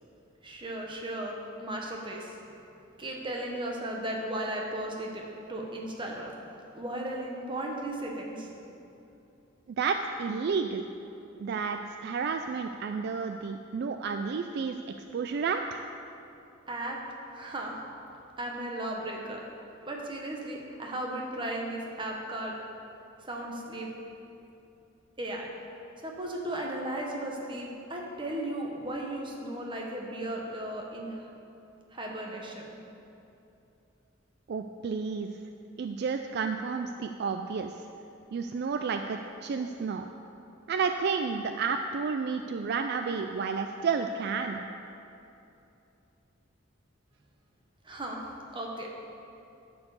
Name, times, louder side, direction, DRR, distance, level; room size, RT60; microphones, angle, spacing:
voice 1, 0.4-2.3 3.0-5.2 5.5-6.3 6.7-8.5 16.7-17.0 17.3-17.7 18.4-19.4 19.9-22.5 23.3-23.9 25.2-25.5 26.0-31.2 31.9-32.8 47.8-48.2 48.5-48.9, right 1 dB, 25° right, -1 dB, 1.1 m, -35 dB
voice 2, 9.8-10.9 11.4-14.8 15.1-15.8 34.5-35.3 35.8-37.7 38.3-40.1 40.7-44.6, right 5 dB, 55° right, 6 dB, 0.3 m, -31 dB
10.0 x 4.7 x 7.0 m, 2.8 s
head